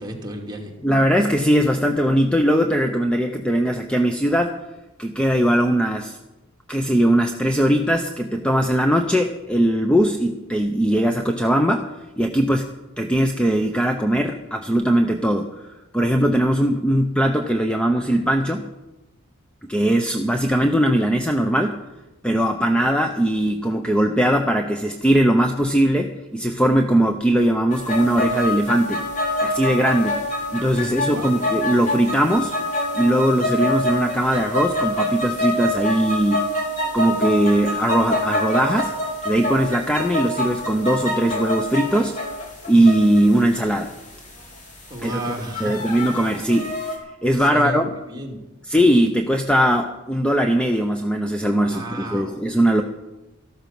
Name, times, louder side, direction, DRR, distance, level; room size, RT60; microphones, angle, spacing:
voice 1, 0.0-0.7 30.8-31.3 44.9-45.8 47.4-47.8 48.1-48.4 51.5-52.5, right 1 dB, 20° right, 0 dB, 2.6 m, -33 dB
voice 2, 0.8-4.6 5.0-6.2 6.7-11.9 12.2-15.7 15.9-18.7 19.7-21.8 22.2-29.0 29.4-30.2 30.5-32.5 32.9-36.5 36.9-38.9 39.2-42.2 42.7-43.9 45.0-45.2 45.6-46.7 47.2-47.9 48.6-52.8, right 1 dB, 5° left, 5 dB, 0.7 m, -20 dB
sound 1, 27.7-47.0, left 1 dB, 35° left, 3.1 m, -26 dB
14.0 x 12.5 x 5.9 m, 1.0 s
head